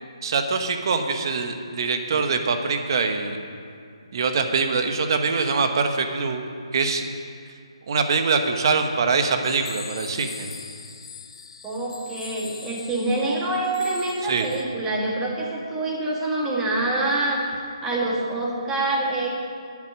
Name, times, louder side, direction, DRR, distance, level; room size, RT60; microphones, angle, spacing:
voice 1, 0.2-3.4 4.1-6.4 6.7-7.0 7.9-10.5 14.2-14.5, right 4 dB, 45° right, 6 dB, 1.1 m, -23 dB
sound 1, 9.4-14.6, left 5 dB, 55° left, 1.2 m, -41 dB
voice 2, 11.6-17.4 17.8-19.3, right 2 dB, 10° right, -3 dB, 1.6 m, -26 dB
9.7 x 9.1 x 6.2 m, 2.4 s
hypercardioid pair, 160°, 3 cm